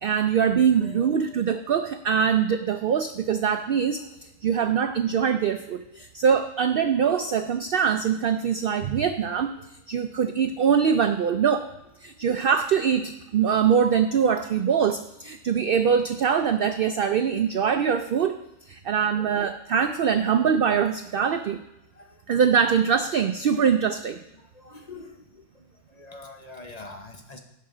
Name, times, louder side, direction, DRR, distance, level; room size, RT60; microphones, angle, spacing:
voice 1, 0.0-4.0 4.4-9.6 9.9-11.7 12.0-18.4 18.7-21.6 22.3-24.2, right 7 dB, 65° right, 9 dB, 0.5 m, -23 dB
voice 2, 24.5-25.2 25.9-27.4, left 2 dB, 35° left, 3 dB, 1.0 m, -43 dB
17.0 x 5.7 x 3.8 m, 0.91 s
omnidirectional pair, 1.4 m